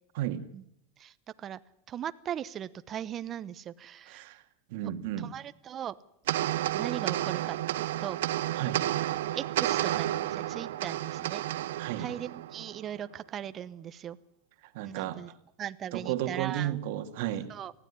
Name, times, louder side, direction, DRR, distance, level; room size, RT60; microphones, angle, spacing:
voice 1, 1.0-1.6 1.9-4.3 4.8-4.9 5.2-6.0 6.7-8.2 9.3-11.4 12.0-14.2 14.8-15.3 15.6-16.8 17.5-17.7, right 10 dB, 30° right, 14 dB, 0.8 m, -39 dB
voice 2, 4.1-4.4 4.7-5.3 8.5-8.9 11.8-12.1 14.7-15.2 15.9-17.5, right 12 dB, 65° right, 9 dB, 1.8 m, -33 dB
sound 1, 6.3-12.9, right 13 dB, 80° right, 0.8 m, -31 dB
19.5 x 15.0 x 9.9 m, 0.76 s
supercardioid pair, 135°, 0 cm